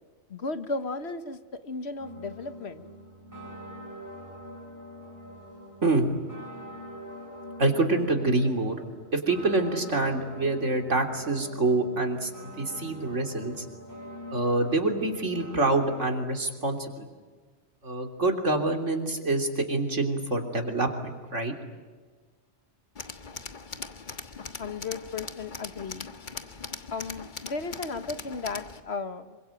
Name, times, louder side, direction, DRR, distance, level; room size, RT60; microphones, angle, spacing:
voice 1, 0.3-2.8 24.4-26.1 26.9-29.4, left 3 dB, 60° left, 10 dB, 1.6 m, -35 dB
sound 1, 2.0-16.1, equal, 15° right, 6.9 m, -44 dB
voice 2, 7.6-8.8 9.1-13.7 14.3-17.1 17.8-21.5, right 2 dB, 80° right, 4 dB, 3.6 m, -26 dB
Tools, 23.0-28.8, left 4 dB, 40° left, 1.5 m, -40 dB
27.0 x 24.0 x 9.1 m, 1.4 s
omnidirectional pair, 1.2 m